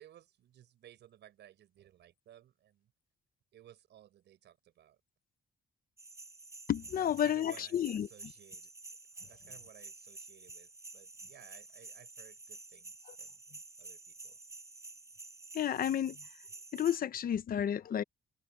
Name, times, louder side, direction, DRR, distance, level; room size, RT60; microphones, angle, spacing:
voice 1, 0.0-2.9 3.5-5.0 7.0-8.7 9.2-13.4 13.8-14.4, right 11 dB, 80° right, 5.4 m, -59 dB
sound 1, 6.0-17.0, right 3 dB, 15° right, 4.7 m, -50 dB
voice 2, 6.7-8.1 15.5-16.2 16.7-18.0, left 10 dB, 55° left, 0.9 m, -31 dB
cardioid pair, 135°, 18 cm